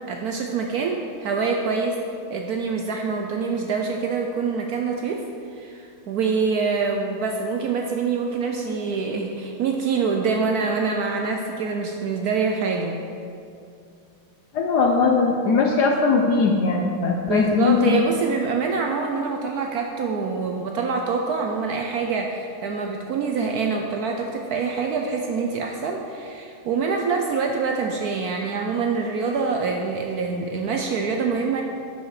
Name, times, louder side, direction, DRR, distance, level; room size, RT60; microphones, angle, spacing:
voice 1, 0.1-2.0 2.3-5.2 5.5-13.0 17.3-31.6, right 4 dB, 90° right, 2 dB, 0.8 m, -25 dB
voice 2, 14.5-18.0, left 4 dB, 70° left, 2 dB, 1.0 m, -20 dB
12.0 x 5.5 x 4.8 m, 2.4 s
omnidirectional pair, 2.4 m